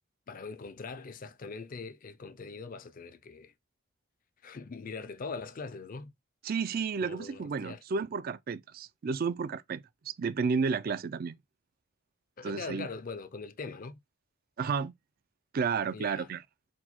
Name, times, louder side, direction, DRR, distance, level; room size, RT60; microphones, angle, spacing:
voice 1, 0.3-3.5 4.4-6.1 7.0-7.8 12.4-14.0 15.9-16.3, left 4 dB, 40° left, 0.5 m, -41 dB
voice 2, 6.4-11.4 12.4-12.9 14.6-14.9 15.5-16.4, right 5 dB, 45° right, 0.4 m, -32 dB
4.3 x 2.3 x 4.2 m
head